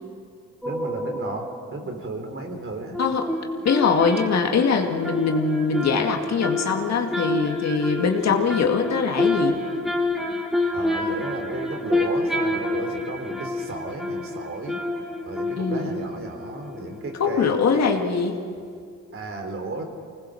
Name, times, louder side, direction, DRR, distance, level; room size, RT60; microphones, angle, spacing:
sound 1, 0.6-1.8 2.9-17.5 17.7-17.8, left 2 dB, ahead, 3.0 m, -28 dB
voice 1, 0.6-3.0 10.7-14.8 15.2-17.6 19.1-19.8, right 2 dB, 45° right, 4 dB, 3.7 m, -34 dB
voice 2, 3.0-3.3 3.6-9.6 15.6-16.0 17.2-18.4, left 5 dB, 60° left, 3 dB, 2.3 m, -22 dB
25.0 x 19.5 x 6.5 m, 2.2 s
cardioid pair, 90°, 30 cm